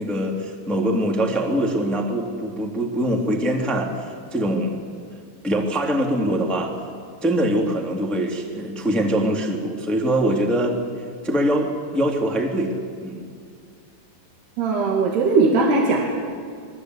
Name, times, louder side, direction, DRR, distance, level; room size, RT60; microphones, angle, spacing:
voice 1, 0.0-4.8 5.4-6.7 7.2-10.8 11.2-13.2, right 1 dB, ahead, 0 dB, 1.8 m, -23 dB
voice 2, 14.6-16.1, right 3 dB, 65° right, -1 dB, 4.1 m, -19 dB
29.5 x 22.0 x 8.2 m, 2.1 s
omnidirectional pair, 5.3 m